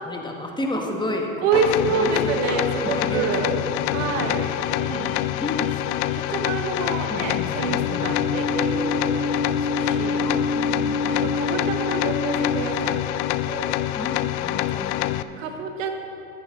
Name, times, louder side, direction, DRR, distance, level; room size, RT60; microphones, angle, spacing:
voice 1, 0.1-1.5 1.8-3.6 3.9-4.2 4.9-5.1 5.4-6.3 7.1-8.1 10.2-11.3 13.9-15.5, left 1 dB, 10° left, 1 dB, 1.8 m, -32 dB
voice 2, 1.4-3.5 3.9-5.2 6.3-10.3 11.1-13.9 15.4-15.9, right 4 dB, 65° right, 4 dB, 1.6 m, -27 dB
sound 1, 1.5-15.2, left 14 dB, 55° left, 0.5 m, -26 dB
sound 2, 2.0-13.1, left 3 dB, 80° left, 1.0 m, -30 dB
14.5 x 13.0 x 4.0 m, 2.7 s
hypercardioid pair, 90°, 41 cm